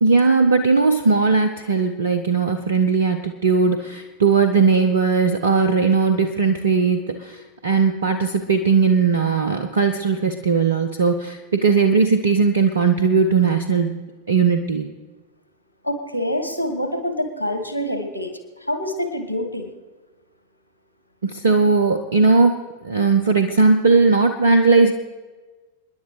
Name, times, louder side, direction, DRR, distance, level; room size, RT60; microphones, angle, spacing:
voice 1, 0.0-14.0 14.3-14.9 21.2-22.6 22.8-24.9, right 4 dB, 65° right, 8 dB, 0.7 m, -18 dB
voice 2, 15.8-18.3 18.6-19.7, left 1 dB, 85° right, 6 dB, 1.6 m, -26 dB
29.5 x 10.5 x 3.2 m, 1.3 s
figure-of-eight pair, 90°, 0 cm